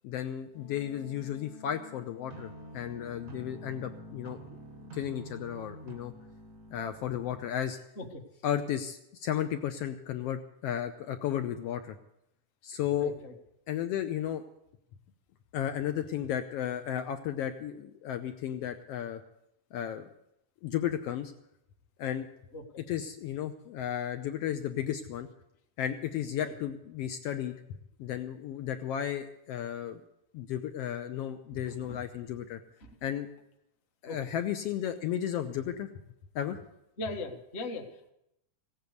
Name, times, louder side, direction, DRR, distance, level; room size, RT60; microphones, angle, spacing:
voice 1, 0.0-4.4 4.9-6.1 6.7-7.8 8.4-12.0 12.6-13.1 13.7-14.4 15.5-19.2 19.7-20.1 20.6-21.3 22.0-22.3 22.9-25.3 25.8-27.6 28.0-30.0 30.3-32.6 33.0-33.3 34.0-35.9 36.3-36.6, left 10 dB, 90° left, 8 dB, 1.4 m, -34 dB
Wind instrument woodwind instrument, 0.5-5.4, left 8 dB, 65° left, 2.0 m, -53 dB
sound 1, 2.3-7.4, right 3 dB, 80° right, 0.7 m, -48 dB
voice 2, 12.9-13.3 22.5-22.6 26.4-26.5 31.6-32.0 32.8-33.0 34.1-34.2 37.0-38.1, left 2 dB, 35° left, 2 dB, 1.0 m, -40 dB
17.0 x 8.7 x 8.0 m, 0.82 s
omnidirectional pair, 3.6 m